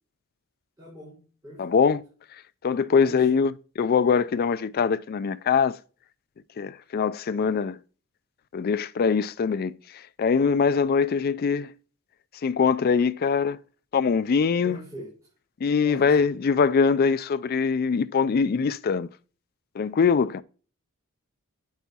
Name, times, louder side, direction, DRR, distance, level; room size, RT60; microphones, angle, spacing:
voice 1, 0.8-1.2 1.4-1.9 3.1-3.4 14.6-15.1 15.8-16.2, right 1 dB, 15° right, 4.6 m, -42 dB
voice 2, 1.6-2.0 2.6-5.8 6.6-7.8 8.5-9.7 10.2-11.7 12.4-13.6 13.9-14.8 15.6-19.1 19.8-20.4, left 5 dB, 45° left, 0.3 m, -23 dB
9.1 x 8.2 x 2.9 m
head